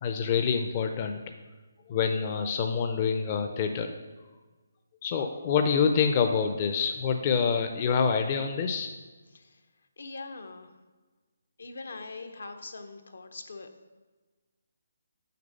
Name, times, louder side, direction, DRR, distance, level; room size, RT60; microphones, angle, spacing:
voice 1, 0.0-1.2 1.9-3.9 5.0-8.9, left 6 dB, 30° left, 5 dB, 0.5 m, -26 dB
voice 2, 10.0-10.7 11.6-13.7, left 3 dB, 75° left, 7 dB, 0.8 m, -41 dB
6.7 x 4.9 x 5.3 m, 1.3 s
hypercardioid pair, 160°, 0 cm